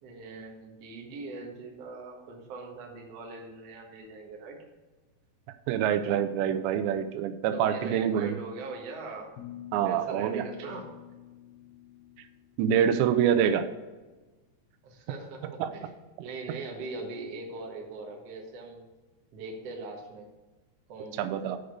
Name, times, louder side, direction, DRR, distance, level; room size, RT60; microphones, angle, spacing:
voice 1, 0.0-4.6 7.5-9.4 9.8-10.8 14.8-18.9 19.3-20.3 20.9-21.5, right 3 dB, 65° right, 0 dB, 1.6 m, -41 dB
voice 2, 5.7-8.4 9.7-10.5 12.6-13.7 15.6-15.7 21.2-21.6, right 9 dB, 90° right, 9 dB, 2.8 m, -26 dB
sound 1, 9.4-12.5, left 13 dB, 80° left, 2.3 m, -47 dB
8.2 x 5.1 x 6.5 m, 1.2 s
omnidirectional pair, 4.9 m